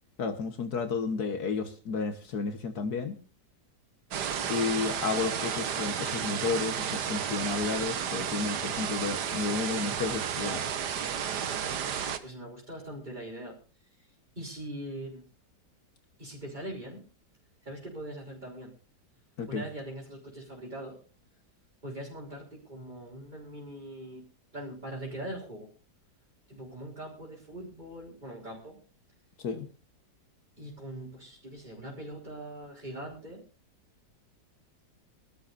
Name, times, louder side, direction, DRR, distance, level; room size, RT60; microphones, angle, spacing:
voice 1, 0.2-3.2 4.5-10.6 19.4-19.6 29.4-29.7, left 5 dB, 65° left, 8 dB, 1.8 m, -32 dB
sound 1, 4.1-12.2, right 8 dB, 70° right, 1.7 m, -32 dB
voice 2, 12.2-13.6 14.0-15.2 16.2-17.0 17.6-18.7 19.5-21.0 21.8-24.2 24.5-25.7 26.5-28.8 30.6-33.4, right 1 dB, 25° right, -5 dB, 4.4 m, -41 dB
24.5 x 13.0 x 2.6 m, 0.34 s
omnidirectional pair, 1.8 m